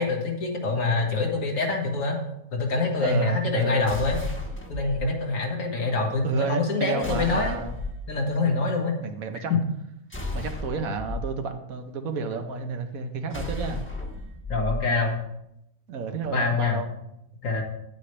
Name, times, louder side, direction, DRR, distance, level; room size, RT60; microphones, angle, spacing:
voice 1, 0.0-2.2 2.5-4.2 4.7-7.6 8.1-9.0 14.5-15.2 16.3-16.8 17.4-17.6, left 3 dB, 70° left, 1 dB, 2.0 m, -25 dB
voice 2, 3.0-3.9 6.2-7.7 9.0-9.5 10.3-13.8 15.9-17.0, right 4 dB, 80° right, 6 dB, 1.4 m, -31 dB
sound 1, 3.9-5.0 7.0-8.0 10.1-11.2 13.3-14.8, left 2 dB, 10° left, 1.1 m, -33 dB
9.8 x 8.9 x 3.2 m, 0.81 s
omnidirectional pair, 1.4 m